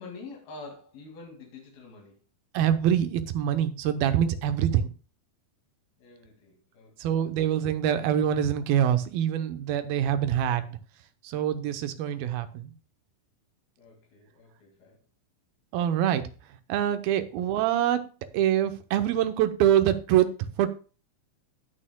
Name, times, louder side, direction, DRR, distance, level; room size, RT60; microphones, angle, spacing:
voice 1, 0.0-2.2 6.0-7.2 13.8-15.0 17.1-17.3, left 3 dB, 90° left, -1 dB, 4.1 m, -47 dB
voice 2, 2.5-4.9 7.0-10.8 11.2-12.7 15.7-16.2 16.7-18.0 18.3-20.3 20.6-20.7, right 10 dB, 85° right, 10 dB, 2.7 m, -25 dB
18.5 x 6.5 x 2.2 m, 0.35 s
omnidirectional pair, 4.1 m